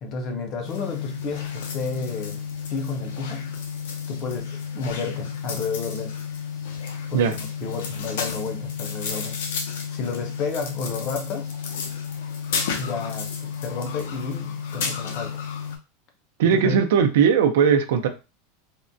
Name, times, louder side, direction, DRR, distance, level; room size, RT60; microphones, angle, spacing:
voice 1, 0.0-2.4 2.7-3.6 4.1-6.2 7.1-9.4 9.9-11.5 12.8-15.5 16.5-16.8, left 4 dB, 25° left, 0.5 m, -31 dB
sound 1, 0.6-15.8, left 6 dB, 75° left, 0.6 m, -32 dB
voice 2, 16.4-18.1, right 7 dB, 70° right, 0.5 m, -18 dB
3.5 x 2.1 x 2.6 m
supercardioid pair, 175°, 0 cm